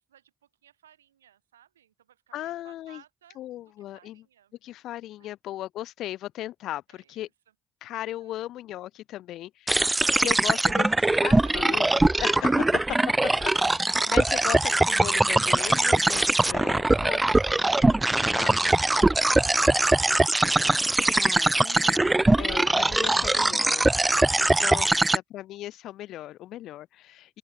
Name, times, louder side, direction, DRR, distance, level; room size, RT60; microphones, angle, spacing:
voice 1, 0.0-4.5 5.2-5.3 6.9-7.3 8.2-8.4 10.1-14.1 16.7-21.3 24.4-25.0, right 10 dB, 85° right, 4.2 m, -58 dB
voice 2, 2.3-3.0 3.4-4.2 4.6-7.3 7.8-9.9 10.2-10.9 11.1-11.9 12.2-12.7 14.1-17.2 18.3-19.2 21.1-23.9 24.6-24.9 25.3-27.4, left 14 dB, 65° left, 3.3 m, -37 dB
sound 1, 9.7-25.2, right 2 dB, 15° right, 0.3 m, -22 dB
open air
figure-of-eight pair, 45°, 0 cm